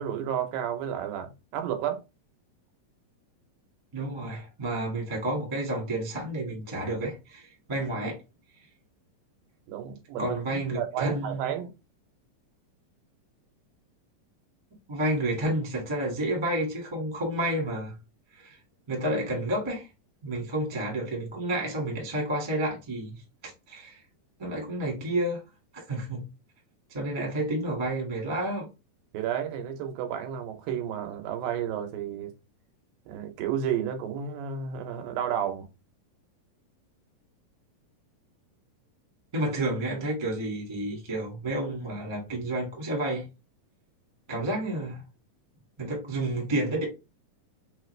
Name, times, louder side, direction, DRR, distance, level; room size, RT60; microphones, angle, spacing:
voice 1, 0.0-2.0 9.7-11.7 29.1-32.3 33.1-35.7, right 9 dB, 90° right, 2.6 m, -32 dB
voice 2, 3.9-8.2 10.2-11.5 14.9-17.9 18.3-18.6 18.9-19.9 20.2-24.0 24.4-25.4 25.9-26.2 26.9-28.7 39.3-43.2 44.3-45.0 45.8-46.8, right 1 dB, 20° right, 0.7 m, -30 dB
5.5 x 2.5 x 3.1 m
omnidirectional pair, 4.0 m